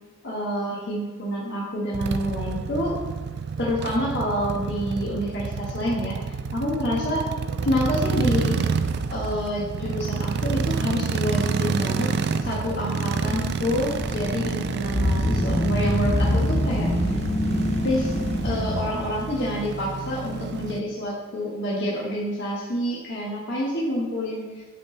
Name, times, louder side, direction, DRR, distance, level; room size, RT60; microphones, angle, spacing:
voice 1, 0.2-3.0 3.6-7.2 7.6-8.6 9.1-12.1 12.4-16.9 17.8-18.2 18.4-24.6, equal, 60° left, -5 dB, 1.2 m, -27 dB
sound 1, 1.9-20.8, right 5 dB, 55° right, 0.4 m, -29 dB
sound 2, 13.2-18.9, left 1 dB, 35° left, 0.7 m, -25 dB
9.0 x 4.1 x 4.0 m, 1.3 s
head